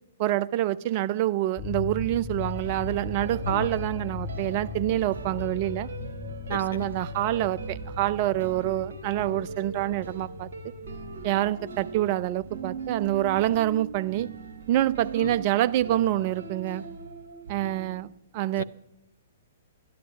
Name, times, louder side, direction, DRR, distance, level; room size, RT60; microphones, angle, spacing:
voice 1, 0.2-5.9 6.5-10.5 11.2-14.3 14.7-16.8 17.5-18.1 18.3-18.6, right 14 dB, 40° right, 16 dB, 0.4 m, -26 dB
sound 1, 1.6-16.4, left 4 dB, 30° left, 4.1 m, -40 dB
sound 2, 2.4-18.0, right 4 dB, 55° right, 2.1 m, -40 dB
sound 3, 3.2-12.3, equal, 15° right, 4.7 m, -45 dB
voice 2, 6.5-6.9 15.1-15.3 18.6-18.7, left 5 dB, 65° left, 12 dB, 0.5 m, -35 dB
12.0 x 11.0 x 5.3 m, 0.85 s
figure-of-eight pair, 115°, 0 cm